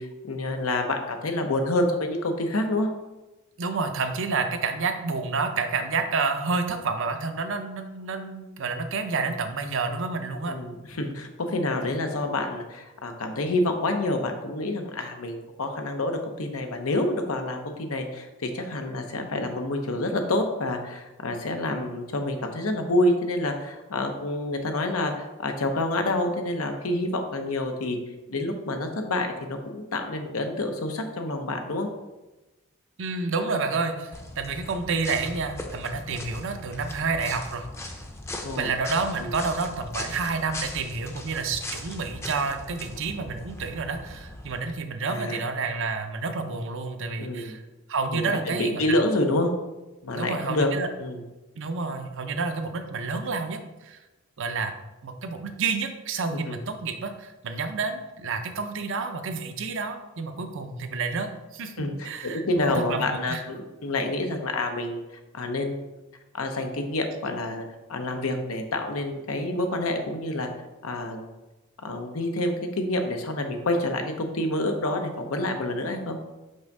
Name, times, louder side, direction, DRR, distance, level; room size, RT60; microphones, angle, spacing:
voice 1, 0.0-2.9 10.5-28.0 28.3-31.9 38.4-38.7 39.2-39.3 45.0-45.4 47.2-47.6 48.1-49.5 50.0-50.7 51.0-51.2 56.3-56.6 61.8-65.0 65.3-66.0 66.3-67.6 67.9-70.5 70.8-71.3 71.8-76.2, left 1 dB, 90° left, 5 dB, 0.9 m, -28 dB
voice 2, 3.6-10.6 33.0-37.9 38.6-47.6 47.9-48.9 50.2-50.9 51.6-54.0 54.4-54.7 55.0-63.4, right 4 dB, 65° right, 7 dB, 0.6 m, -29 dB
sound 1, 34.1-44.6, left 1 dB, 15° left, 0.6 m, -39 dB
5.4 x 3.5 x 5.3 m, 1.1 s
head